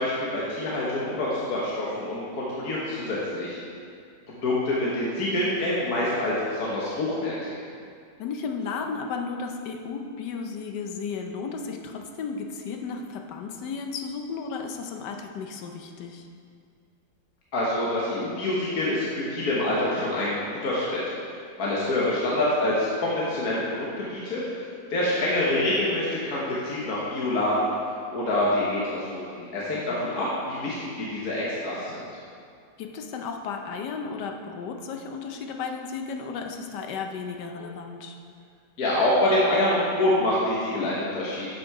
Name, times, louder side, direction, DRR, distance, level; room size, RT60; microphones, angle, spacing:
voice 1, 0.0-3.6 4.3-7.5 17.5-21.0 21.6-24.4 24.9-27.7 28.1-32.1 38.8-41.5, left 1 dB, 65° left, -6 dB, 1.6 m, -26 dB
voice 2, 8.2-16.3 29.9-30.1 32.8-38.2, left 5 dB, 90° left, 3 dB, 1.4 m, -34 dB
7.6 x 6.3 x 4.7 m, 2.3 s
omnidirectional pair, 1.8 m